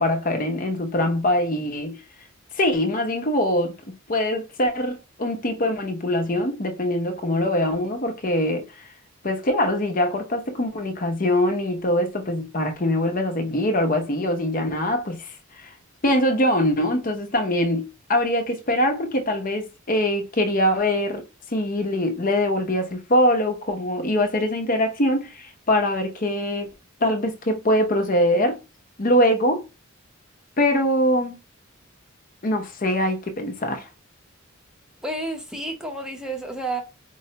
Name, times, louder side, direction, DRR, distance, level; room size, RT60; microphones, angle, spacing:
voice 1, 0.0-2.0 2.5-3.8 4.1-8.7 9.2-15.3 15.6-15.7 16.0-21.2 21.5-26.7 27.0-28.6 29.0-29.6 30.6-31.4 32.4-33.9, left 1 dB, 40° left, 0.7 m, -23 dB
voice 2, 35.0-36.8, right 2 dB, 5° right, 0.7 m, -30 dB
4.6 x 2.1 x 2.8 m
head